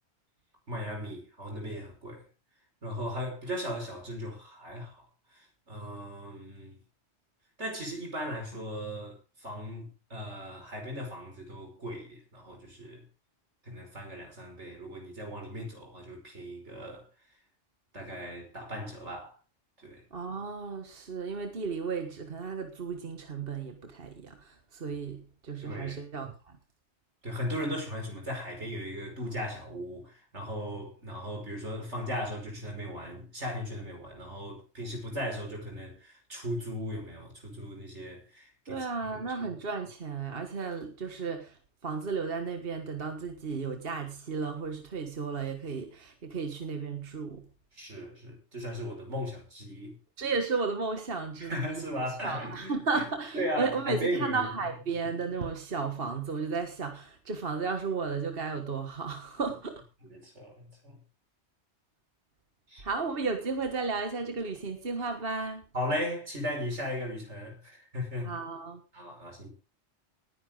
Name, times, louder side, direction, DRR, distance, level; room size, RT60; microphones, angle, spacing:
voice 1, 0.7-2.2 2.8-5.1 5.3-6.8 7.6-13.0 13.6-17.1 17.9-19.3 19.8-20.0 25.6-26.0 27.2-38.9 39.1-39.2 47.7-50.0 51.4-53.0 53.3-54.4 60.0-61.0 62.7-62.8 65.7-68.3 68.9-69.5, equal, 85° right, 5.9 m, -37 dB
voice 2, 20.1-26.3 38.7-47.5 50.2-51.8 52.2-59.8 62.8-65.6 68.2-68.8, right 4 dB, 55° right, 1.7 m, -34 dB
19.5 x 10.0 x 3.8 m
omnidirectional pair, 1.2 m